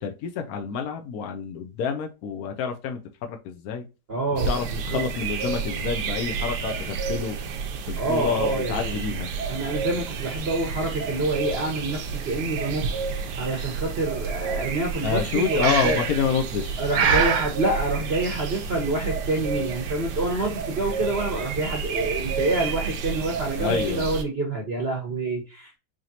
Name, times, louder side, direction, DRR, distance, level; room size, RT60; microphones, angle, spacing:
voice 1, 0.0-3.8 4.3-7.4 7.9-9.3 15.0-16.8 23.6-24.1, left 6 dB, 80° left, 0.8 m, -28 dB
voice 2, 4.1-4.5 4.9-5.0 8.0-9.0 9.5-12.9 13.4-16.0 16.8-25.8, right 2 dB, 45° right, 0.8 m, -27 dB
sound 1, 4.4-24.2, right 5 dB, 65° right, 1.1 m, -30 dB
Breathing, 15.6-16.2 16.9-17.5, right 6 dB, 80° right, 1.7 m, -23 dB
5.0 x 2.9 x 2.8 m
omnidirectional pair, 2.3 m